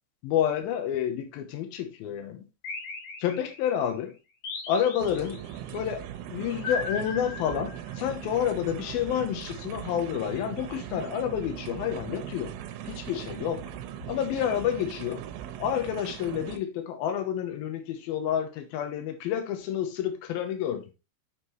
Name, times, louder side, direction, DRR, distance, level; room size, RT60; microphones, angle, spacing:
voice 1, 0.2-2.5 3.2-4.1 4.7-5.4 5.7-6.0 6.3-12.5 12.8-13.6 14.1-15.2 15.6-20.9, left 9 dB, 90° left, 2.1 m, -29 dB
sound 1, 2.6-3.8 4.4-5.6 6.6-8.1, left 4 dB, 50° left, 2.7 m, -37 dB
sound 2, 5.0-16.6, right 11 dB, 85° right, 3.4 m, -40 dB
sound 3, 6.1-6.2 6.8-7.0 7.5-7.6 8.0-8.4 8.9-9.3 9.7-9.8 10.3-10.7 11.3-11.8 12.3-12.9 13.6-14.6, right 4 dB, 35° right, 2.7 m, -46 dB
7.4 x 6.6 x 3.1 m
omnidirectional pair, 5.8 m